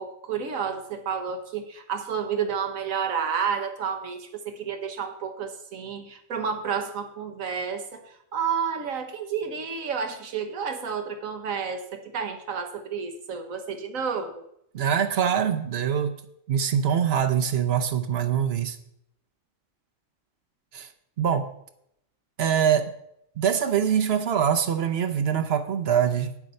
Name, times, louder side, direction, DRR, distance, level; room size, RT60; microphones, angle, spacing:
voice 1, 0.0-14.4, right 6 dB, 85° right, 6 dB, 1.5 m, -30 dB
voice 2, 14.7-16.1 16.5-18.8 20.7-20.9 21.2-21.5 22.4-22.9 23.4-26.5, right 8 dB, 55° right, 8 dB, 0.9 m, -24 dB
9.1 x 7.2 x 5.4 m, 0.76 s
omnidirectional pair, 1.4 m